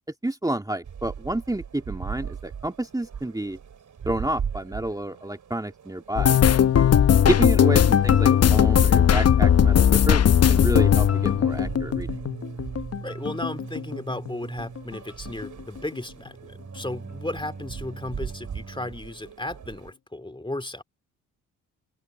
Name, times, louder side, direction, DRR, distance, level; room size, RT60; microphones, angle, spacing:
voice 1, 0.2-3.6 4.1-6.7 7.3-10.2 10.5-12.1, right 1 dB, 10° right, 2.4 m, -29 dB
sound 1, 0.8-19.9, right 7 dB, 50° right, 5.2 m, -40 dB
sound 2, 6.2-13.0 13.3-14.3 14.6-14.9 15.3-15.5, left 9 dB, 40° left, 0.9 m, -18 dB
sound 3, 10.2-18.9, right 4 dB, 30° right, 6.4 m, -41 dB
voice 2, 13.0-20.8, left 1 dB, 10° left, 2.8 m, -35 dB
hypercardioid pair, 50°, 39 cm